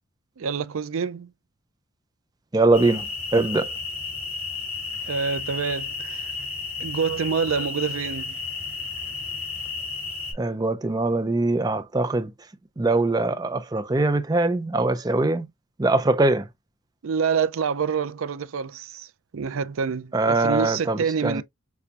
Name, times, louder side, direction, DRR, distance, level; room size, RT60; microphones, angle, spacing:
voice 1, 0.4-1.3 5.0-6.3 6.8-8.4 17.0-21.4, right 6 dB, 80° right, 0.5 m, -27 dB
voice 2, 2.5-3.0 3.3-3.7 10.4-12.3 12.8-15.5 15.8-16.5 20.1-21.4, right 2 dB, 20° right, 0.4 m, -22 dB
sound 1, 2.7-10.3, left 4 dB, 40° left, 2.6 m, -32 dB
6.7 x 2.3 x 2.8 m
head